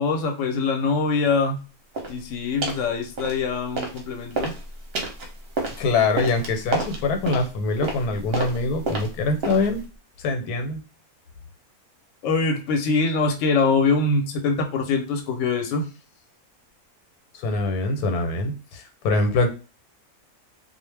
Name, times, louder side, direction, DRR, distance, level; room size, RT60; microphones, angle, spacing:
voice 1, 0.0-1.6 2.1-4.5 12.2-15.9, left 4 dB, 65° left, 4 dB, 0.9 m, -23 dB
sound 1, 1.9-2.2 2.6-2.9 3.2-4.0 4.3-9.8, right 3 dB, 55° right, 0.8 m, -30 dB
voice 2, 5.8-9.8 10.2-10.8 17.3-19.5, left 3 dB, 85° left, 6 dB, 1.1 m, -24 dB
2.3 x 2.1 x 3.2 m, 0.33 s
omnidirectional pair, 1.6 m